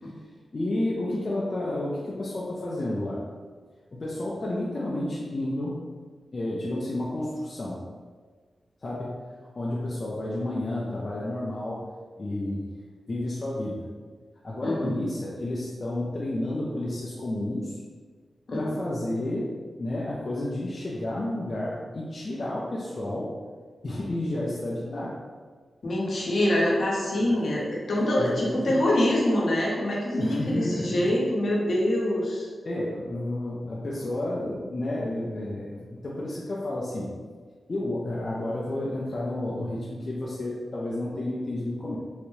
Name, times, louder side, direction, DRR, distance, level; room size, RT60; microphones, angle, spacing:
voice 1, 0.5-3.2 3.9-5.8 6.3-7.8 8.8-9.3 9.6-11.8 12.2-12.6 13.1-13.8 14.4-17.8 18.5-19.5 19.8-23.4 23.8-25.2 27.2-27.3 28.0-28.6 30.1-31.1 32.6-37.1 37.7-42.0, left 1 dB, 50° left, -6 dB, 0.6 m, -31 dB
voice 2, 14.6-15.0 18.5-18.8 25.8-32.5, left 1 dB, 65° left, -4 dB, 0.9 m, -25 dB
3.8 x 2.2 x 3.1 m, 1.5 s
cardioid pair, 55°, 0 cm